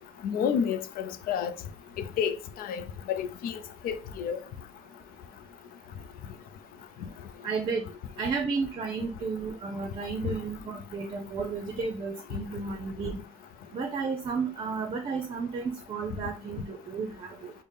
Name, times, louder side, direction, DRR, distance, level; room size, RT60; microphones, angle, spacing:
voice 1, 0.2-1.5 2.0-4.4 10.2-10.3, left 8 dB, 70° left, 0.4 m, -30 dB
voice 2, 7.4-7.9 8.2-13.2 13.7-17.5, right 4 dB, 40° right, 0.6 m, -33 dB
4.0 x 2.1 x 3.4 m
cardioid pair, 105°, 16 cm